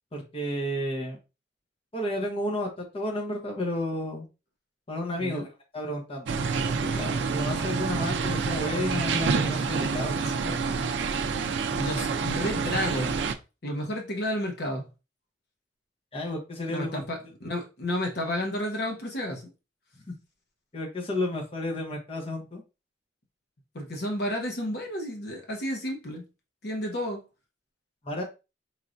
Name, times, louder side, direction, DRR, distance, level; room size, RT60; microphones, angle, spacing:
voice 1, 0.1-1.2 1.9-4.3 4.9-5.5 5.7-6.4 6.7-10.5 16.1-17.0 20.1-20.2 20.7-22.6 28.0-28.2, left 1 dB, 30° left, 1.0 m, -32 dB
sound 1, 6.3-13.3, right 5 dB, 85° right, 0.4 m, -28 dB
voice 2, 11.7-13.2 13.6-14.9 16.7-19.5 23.7-26.2 26.6-27.2, equal, 65° left, 1.0 m, -31 dB
4.4 x 3.2 x 2.6 m
head